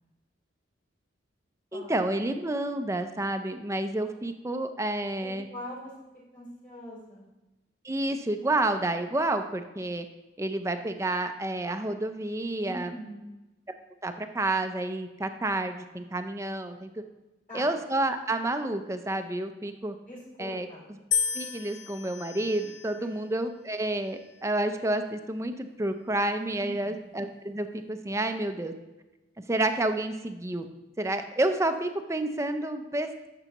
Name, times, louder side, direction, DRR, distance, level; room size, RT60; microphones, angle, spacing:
voice 1, 1.7-5.5 7.8-10.0 10.4-12.9 14.0-16.9 17.5-19.9 20.4-21.0 21.3-28.7 29.5-30.7 31.0-33.3, right 2 dB, 15° right, 8 dB, 0.4 m, -30 dB
voice 2, 5.2-5.9 6.3-7.2 12.6-13.3 17.5-17.7 20.1-20.8 22.9-23.1 26.6-26.9, equal, 40° left, -9 dB, 3.3 m, -42 dB
sound 1, 21.1-23.3 24.1-24.7, left 7 dB, 65° left, 0.5 m, -33 dB
11.5 x 6.9 x 3.0 m, 1.1 s
head